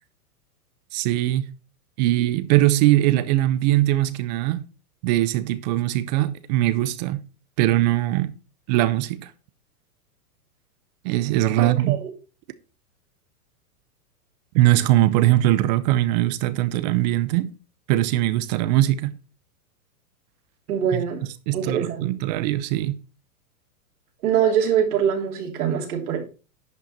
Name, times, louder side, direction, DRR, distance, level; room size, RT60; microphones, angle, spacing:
voice 1, 0.9-1.5 2.0-4.7 5.0-7.2 7.6-8.3 8.7-9.3 11.0-12.0 14.5-17.5 17.9-19.1 20.9-21.0 21.5-23.0, right 15 dB, 30° right, 0.5 m, -21 dB
voice 2, 11.6-11.9 20.7-21.2 21.5-22.1 24.2-26.2, right 8 dB, 70° right, 3.2 m, -23 dB
10.5 x 5.8 x 4.1 m
hypercardioid pair, 135°, 46 cm